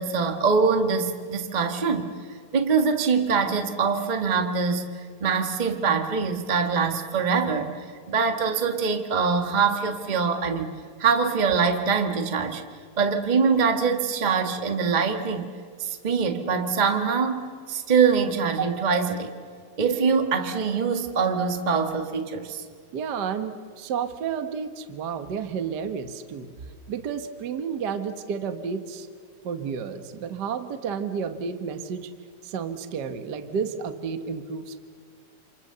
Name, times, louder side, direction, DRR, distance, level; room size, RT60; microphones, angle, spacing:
voice 1, 0.0-2.1 2.5-10.7 11.0-12.6 13.0-15.5 15.8-19.3 19.8-22.6, right 5 dB, 50° right, 5 dB, 0.5 m, -24 dB
voice 2, 22.9-26.6 26.9-29.1 29.4-32.1 32.4-34.8, right 6 dB, 75° right, 9 dB, 0.9 m, -31 dB
28.0 x 28.0 x 6.8 m, 2.1 s
omnidirectional pair, 4.0 m